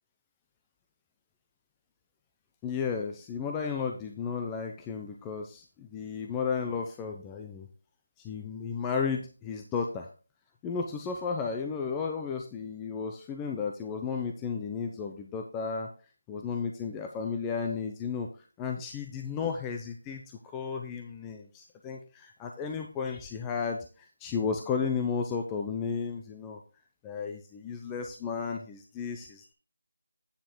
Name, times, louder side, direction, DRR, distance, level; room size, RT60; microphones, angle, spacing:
voice 1, 2.6-7.7 8.2-10.1 10.6-15.9 16.3-18.3 18.6-20.2 20.5-26.6 27.0-29.5, left 5 dB, 10° left, 3 dB, 0.6 m, -33 dB
9.1 x 5.3 x 4.5 m, 0.36 s
figure-of-eight pair, 170°, 0 cm